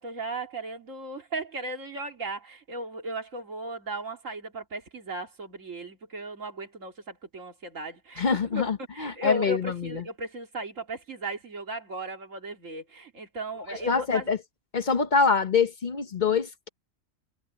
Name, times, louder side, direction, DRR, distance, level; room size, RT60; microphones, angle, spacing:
voice 1, 0.0-8.6 8.9-14.3, right 1 dB, 80° right, 3.0 m, -36 dB
voice 2, 8.2-10.0 13.7-14.4 14.7-16.7, left 5 dB, 40° left, 0.9 m, -25 dB
omnidirectional pair, 1.3 m